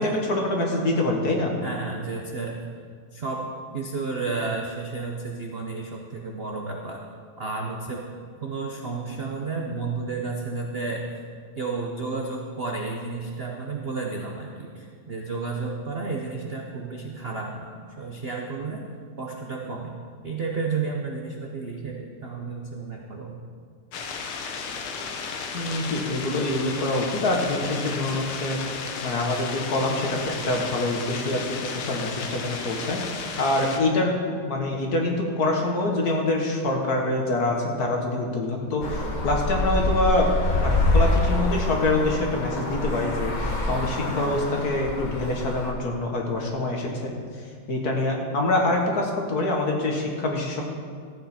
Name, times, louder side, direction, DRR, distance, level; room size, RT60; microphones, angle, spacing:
voice 1, 0.0-1.6 25.5-28.6 29.0-34.2 34.4-40.3 40.6-47.1 47.7-50.6, left 2 dB, 50° left, 1 dB, 1.7 m, -25 dB
voice 2, 1.6-2.6 3.1-7.0 7.4-8.1 8.4-11.0 11.6-18.8 19.2-19.9 20.2-23.4, right 4 dB, 55° right, 0 dB, 0.6 m, -32 dB
sound 1, 23.9-33.8, left 5 dB, 85° left, 1.8 m, -34 dB
Traffic noise roadway noise, 38.8-45.7, left 2 dB, 30° left, 0.8 m, -26 dB
14.5 x 9.2 x 4.3 m, 2.1 s
omnidirectional pair, 2.3 m